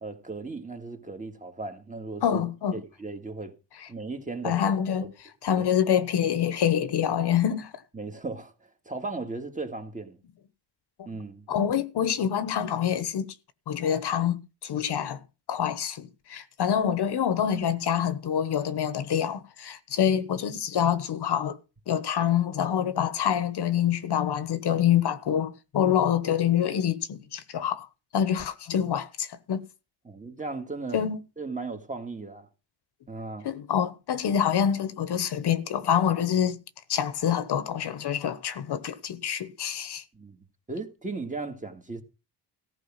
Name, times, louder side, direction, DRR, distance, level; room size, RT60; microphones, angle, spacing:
voice 1, 0.0-2.4 2.7-3.5 3.9-4.6 5.0-5.1 5.6-5.7 7.9-8.5 8.9-10.2 11.1-11.5 30.1-31.0 31.4-32.5 33.1-33.5 40.1-42.0, right 3 dB, 20° right, 1.9 m, -36 dB
voice 2, 2.2-2.8 3.8-3.9 4.4-5.1 5.4-7.7 11.5-13.3 13.7-15.2 15.5-21.6 21.9-27.9 28.1-29.6 30.9-31.2 33.4-36.6 36.9-40.0, left 9 dB, 65° left, 1.2 m, -26 dB
14.5 x 5.0 x 7.4 m
cardioid pair, 125°, 43 cm